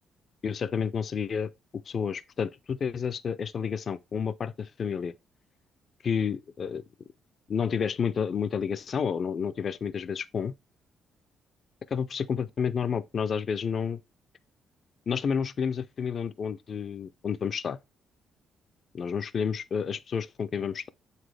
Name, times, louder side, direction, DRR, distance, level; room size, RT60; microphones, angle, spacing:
voice 1, 0.4-1.5 1.9-5.1 6.0-6.8 7.5-10.5 11.9-14.0 15.1-17.8 18.9-20.9, left 6 dB, 50° left, 0.3 m, -30 dB
7.2 x 4.1 x 3.2 m
cardioid pair, 90°, 0 cm